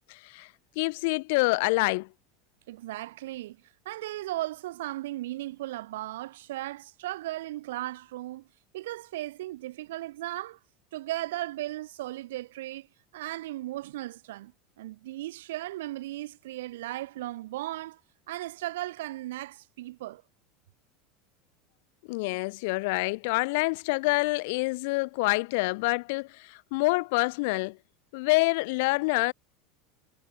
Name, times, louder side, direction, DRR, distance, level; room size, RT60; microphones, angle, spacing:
voice 1, 0.1-0.5 0.8-2.1 22.1-27.8 28.1-29.3, left 26 dB, 70° left, 7.6 m, -27 dB
voice 2, 2.7-3.6 3.8-8.5 8.7-10.6 10.9-12.9 13.1-14.5 14.8-18.0 18.3-20.2, right 16 dB, 85° right, 6.8 m, -36 dB
supercardioid pair, 110°, 0 cm